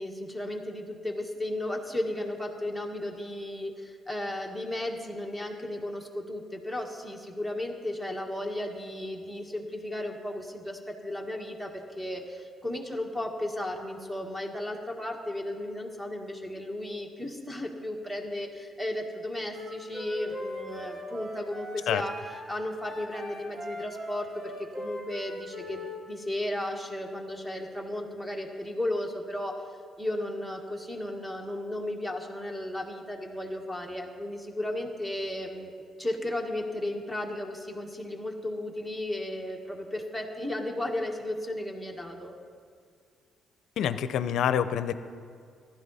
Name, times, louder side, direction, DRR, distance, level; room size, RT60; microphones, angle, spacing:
voice 1, 0.0-22.1 22.5-29.6 30.0-35.7 36.0-42.3, left 1 dB, 5° right, 2 dB, 1.7 m, -34 dB
Wind instrument woodwind instrument, 19.5-26.0, equal, 45° right, 3.8 m, -40 dB
voice 2, 43.8-44.9, left 9 dB, 80° left, 12 dB, 0.5 m, -27 dB
15.0 x 11.5 x 4.1 m, 2.2 s
cardioid pair, 90°, 0 cm